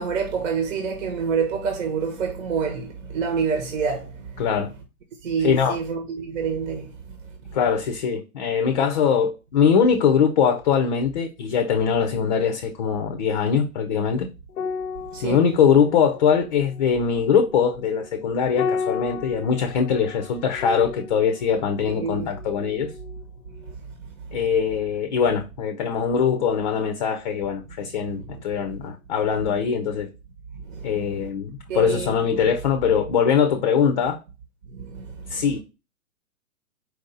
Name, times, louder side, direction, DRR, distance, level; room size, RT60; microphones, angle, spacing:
voice 1, 0.0-4.4 5.2-6.9 12.2-12.3 15.1-15.4 21.8-22.3 28.2-28.4 28.7-28.9 30.7-31.1 31.7-32.5 34.7-35.5, right 6 dB, 60° right, 1.2 m, -28 dB
voice 2, 4.4-4.7 5.4-5.8 7.5-14.3 15.2-22.9 24.3-30.1 30.8-34.2 35.3-35.6, left 7 dB, 35° left, 0.5 m, -22 dB
sound 1, 14.5-23.2 23.5-23.7, left 5 dB, 80° left, 0.6 m, -34 dB
4.6 x 2.6 x 3.8 m
hypercardioid pair, 135°, 43 cm